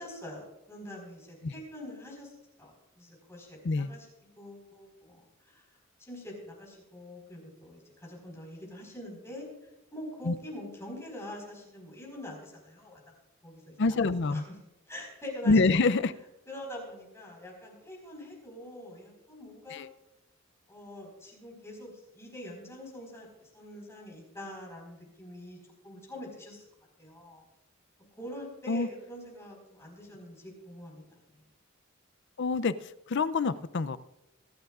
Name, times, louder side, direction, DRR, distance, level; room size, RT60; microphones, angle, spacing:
voice 1, 0.0-2.3 2.6-4.1 4.4-5.6 6.0-9.4 9.9-13.0 13.4-14.4 14.9-15.8 16.5-19.8 20.7-25.6 25.8-26.6 27.0-27.4 28.2-31.4, left 1 dB, 15° left, -1 dB, 4.7 m, -44 dB
voice 2, 13.8-14.4 15.5-16.1 19.7-19.9 28.7-28.9 32.4-32.7 33.1-34.0, left 3 dB, 60° left, 14 dB, 0.5 m, -26 dB
25.0 x 9.3 x 2.5 m, 0.96 s
head